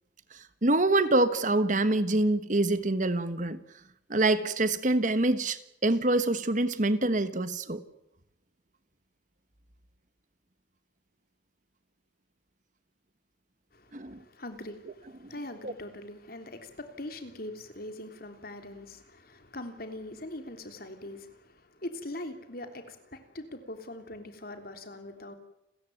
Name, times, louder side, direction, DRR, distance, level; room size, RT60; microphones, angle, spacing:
voice 1, 0.6-3.6 4.1-7.8 13.9-14.2 15.2-15.3 15.6-15.7, right 2 dB, 45° right, 13 dB, 1.3 m, -25 dB
voice 2, 13.7-25.3, left 1 dB, 55° left, 7 dB, 3.3 m, -42 dB
29.5 x 14.5 x 9.3 m, 0.84 s
head